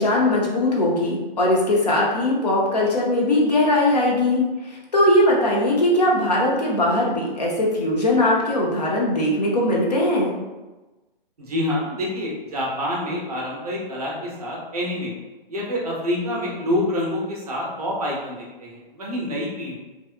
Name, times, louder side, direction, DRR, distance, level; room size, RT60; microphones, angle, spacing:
voice 1, 0.0-4.4 4.9-10.3, left 1 dB, 45° left, -3 dB, 0.5 m, -20 dB
voice 2, 11.4-15.1 15.5-19.7, left 1 dB, 40° right, -4 dB, 0.6 m, -27 dB
2.7 x 2.3 x 2.4 m, 1.1 s
hypercardioid pair, 180°, 29 cm